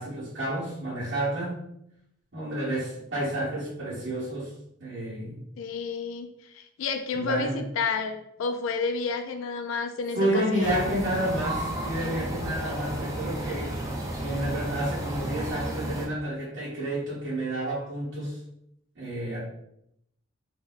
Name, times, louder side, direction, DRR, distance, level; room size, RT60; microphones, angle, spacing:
voice 1, 0.0-1.6 2.3-4.5 4.8-5.4 7.1-7.6 10.1-13.8 14.2-18.4 18.9-19.4, right 1 dB, 60° right, -8 dB, 1.3 m, -30 dB
voice 2, 5.6-10.8, left 4 dB, 85° left, 6 dB, 0.3 m, -31 dB
sound 1, 10.6-16.1, right 1 dB, 15° right, 0.5 m, -33 dB
2.7 x 2.1 x 3.9 m, 0.77 s
head